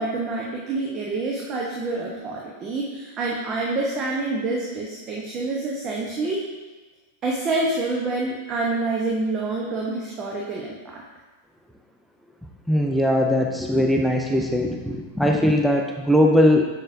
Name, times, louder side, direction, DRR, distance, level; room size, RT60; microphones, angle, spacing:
voice 1, 0.0-6.4 7.2-11.0, right 2 dB, 30° right, -3 dB, 0.9 m, -27 dB
voice 2, 12.7-16.7, equal, ahead, 1 dB, 0.5 m, -20 dB
7.3 x 6.7 x 2.7 m, 1.2 s
figure-of-eight pair, 90°, 0 cm